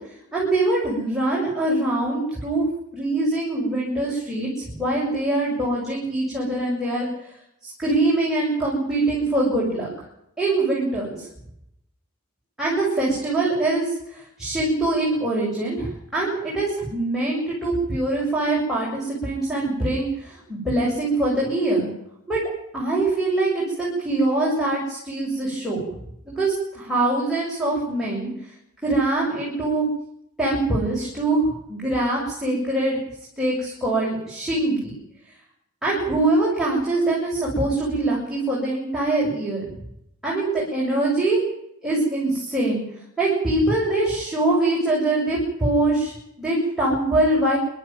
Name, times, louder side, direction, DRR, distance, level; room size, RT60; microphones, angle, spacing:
voice 1, 0.3-2.7 2.9-7.1 7.6-9.9 10.4-11.3 12.6-21.9 22.3-22.4 22.7-25.8 26.3-28.3 28.8-29.9 30.4-33.0 33.4-34.9 35.8-39.7 40.2-41.4 41.8-42.8 43.2-46.1 46.4-47.6, right 2 dB, ahead, -6 dB, 7.1 m, -23 dB
28.0 x 13.0 x 9.3 m, 0.79 s
head